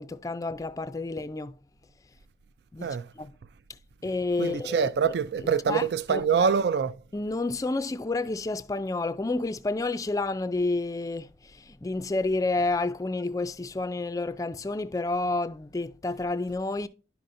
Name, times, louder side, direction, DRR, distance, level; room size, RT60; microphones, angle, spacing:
voice 1, 0.0-1.6 2.7-3.3 4.0-4.9 5.7-5.8 6.1-6.5 7.1-16.9, left 2 dB, 20° left, 0.3 m, -30 dB
voice 2, 4.4-7.0, right 6 dB, 65° right, 0.3 m, -25 dB
11.0 x 5.5 x 2.6 m
head